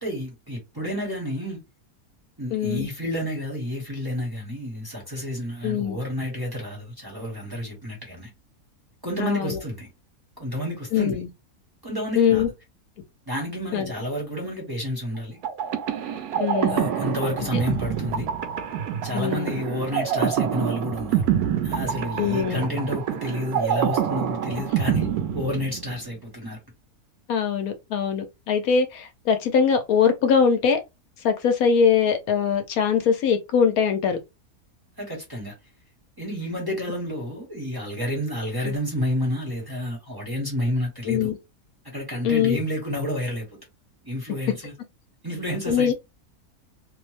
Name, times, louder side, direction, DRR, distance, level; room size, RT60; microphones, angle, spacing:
voice 1, 0.0-1.6 2.4-8.3 9.0-9.9 10.4-11.2 11.8-12.4 13.3-15.4 16.7-18.3 19.0-25.1 25.3-26.6 35.0-35.5 36.2-41.3 41.9-43.5 44.0-44.7 45.2-45.9, equal, 15° right, 1.0 m, -30 dB
voice 2, 2.5-2.9 5.6-6.0 9.2-9.6 10.9-11.3 12.1-12.5 13.7-13.9 16.4-16.8 19.1-19.6 22.2-22.7 27.3-30.8 31.2-34.2 38.7-38.8 41.1-41.4 42.2-42.6 44.5-44.6 45.7-45.9, left 7 dB, 75° left, 1.0 m, -22 dB
sound 1, 15.4-26.1, right 9 dB, 85° right, 1.1 m, -26 dB
2.9 x 2.0 x 3.2 m
omnidirectional pair, 1.6 m